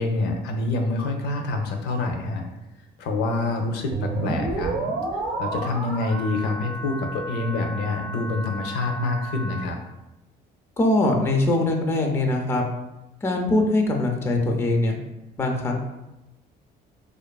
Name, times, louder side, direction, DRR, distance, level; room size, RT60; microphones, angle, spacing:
voice 1, 0.0-2.4 3.0-4.7 5.1-9.8, left 2 dB, 85° left, 3 dB, 0.4 m, -26 dB
sound 1, 3.9-9.6, right 2 dB, 65° right, 0.7 m, -31 dB
voice 2, 10.8-12.6 13.2-15.0 15.4-15.8, left 2 dB, 15° left, 2 dB, 0.3 m, -22 dB
2.5 x 2.3 x 2.2 m, 0.96 s
cardioid pair, 110°, 17 cm